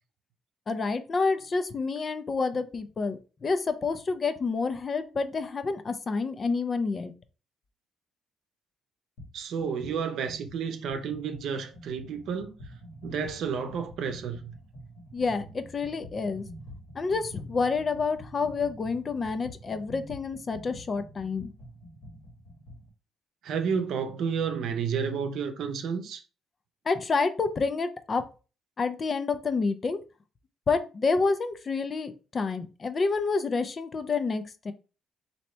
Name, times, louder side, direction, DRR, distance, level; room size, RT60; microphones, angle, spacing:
voice 1, 0.7-7.1 15.1-16.5 17.0-21.5 26.9-28.2 28.8-30.0 30.7-34.7, left 4 dB, 30° left, 0.4 m, -28 dB
sound 1, 9.2-9.3 9.6-22.9, equal, 85° left, 1.4 m, -47 dB
voice 2, 9.3-12.5 13.0-14.5 23.4-26.2, right 6 dB, 70° right, 0.7 m, -31 dB
3.2 x 2.8 x 4.2 m
cardioid pair, 135°, 0 cm